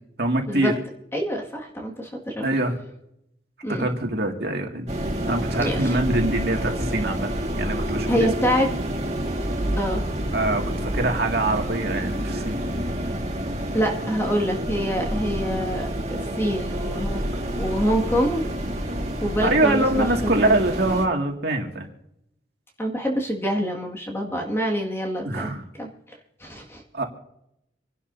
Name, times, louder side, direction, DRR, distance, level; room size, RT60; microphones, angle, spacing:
voice 1, 0.2-0.8 2.4-2.7 3.7-4.9 5.3-8.3 10.3-12.6 19.4-21.9 25.2-25.6 26.9-27.0, right 2 dB, 55° right, 2 dB, 2.2 m, -24 dB
voice 2, 1.1-2.5 3.6-3.9 5.6-5.9 8.1-8.7 9.8-10.0 13.7-17.2 17.6-18.5 19.2-20.5 22.8-25.9 26.4-26.8, equal, 15° left, 0 dB, 1.9 m, -26 dB
sound 1, 4.9-21.0, equal, 35° right, 1.9 m, -28 dB
27.5 x 11.0 x 2.7 m, 0.79 s
head